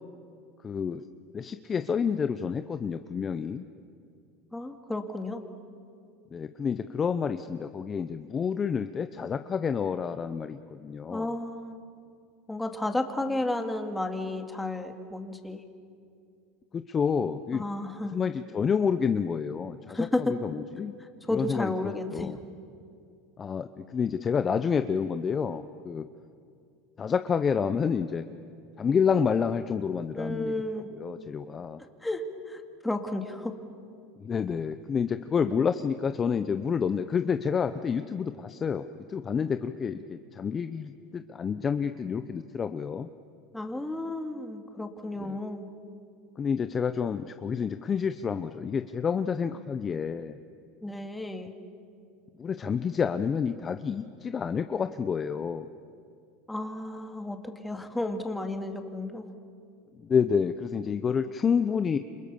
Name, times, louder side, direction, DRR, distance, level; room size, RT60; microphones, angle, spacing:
voice 1, 0.6-1.0 1.3-3.7 6.3-11.3 16.7-17.6 18.1-20.9 21.3-22.4 23.4-26.1 27.0-28.2 28.8-30.5 30.9-31.8 34.2-43.1 45.2-45.4 46.4-50.4 52.4-55.7 60.0-62.0, left 6 dB, 25° left, 10 dB, 0.8 m, -29 dB
voice 2, 4.5-5.4 11.1-11.8 12.5-15.6 17.5-18.2 19.9-20.4 21.0-22.3 30.1-30.9 32.0-33.6 43.5-45.7 50.8-51.5 56.5-59.3, left 2 dB, 5° left, 5 dB, 2.4 m, -32 dB
29.0 x 26.5 x 7.1 m, 2.4 s
supercardioid pair, 115°, 0 cm